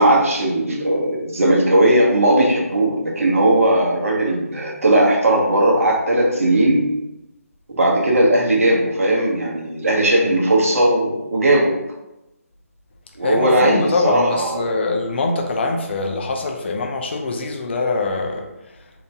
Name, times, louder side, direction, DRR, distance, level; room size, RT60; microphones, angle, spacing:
voice 1, 0.0-6.9 7.8-11.8 13.2-14.7, right 1 dB, 65° right, -1 dB, 0.9 m, -17 dB
voice 2, 13.2-18.5, left 3 dB, 45° left, 2 dB, 0.6 m, -23 dB
2.9 x 2.6 x 3.4 m, 0.93 s
figure-of-eight pair, 155°, 8 cm